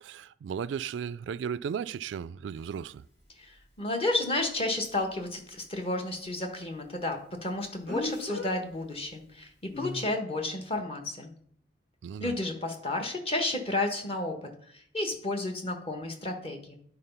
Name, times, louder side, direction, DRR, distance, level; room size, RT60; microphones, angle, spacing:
voice 1, 0.0-3.0 12.0-12.3, right 7 dB, 80° right, 0.3 m, -35 dB
Speech, 2.6-2.7 7.9-8.5 9.7-10.0, left 2 dB, 70° left, 3.5 m, -35 dB
voice 2, 3.4-11.3 12.2-14.4 14.7-16.8, left 2 dB, 35° left, 1.3 m, -32 dB
9.5 x 4.0 x 5.6 m
head